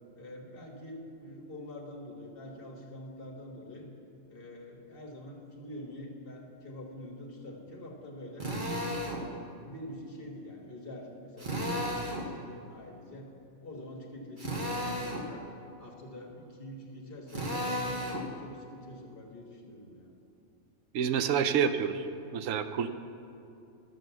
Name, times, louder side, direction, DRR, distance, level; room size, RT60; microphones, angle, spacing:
voice 1, 0.2-3.8 4.3-8.5 8.9-13.3 13.6-15.4 15.8-20.1, left 1 dB, 45° left, 0 dB, 1.6 m, -45 dB
Drill, 8.4-9.2 11.4-12.3 14.4-15.3 17.3-18.3, equal, 40° right, 1.3 m, -33 dB
voice 2, 20.9-22.0 22.3-22.9, right 7 dB, 85° right, 10 dB, 1.0 m, -28 dB
12.0 x 7.0 x 6.9 m, 2.7 s
omnidirectional pair, 1.3 m